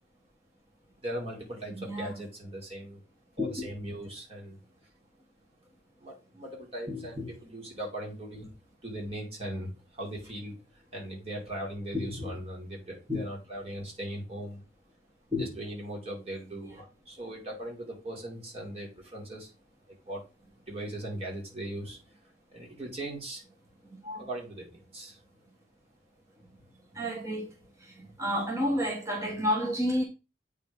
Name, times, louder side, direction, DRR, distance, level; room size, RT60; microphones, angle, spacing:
voice 1, 1.0-3.0 3.4-4.6 6.0-8.5 8.8-14.6 15.4-19.5 19.9-20.2 20.7-22.0 22.5-23.4 24.2-25.2, right 1 dB, 35° right, 2.6 m, -39 dB
voice 2, 6.9-7.2 12.0-12.3 13.1-13.2 15.3-15.5 24.0-24.2 26.9-27.5 27.8-27.9 28.2-30.0, left 1 dB, 15° right, 1.3 m, -30 dB
8.4 x 3.6 x 5.2 m
head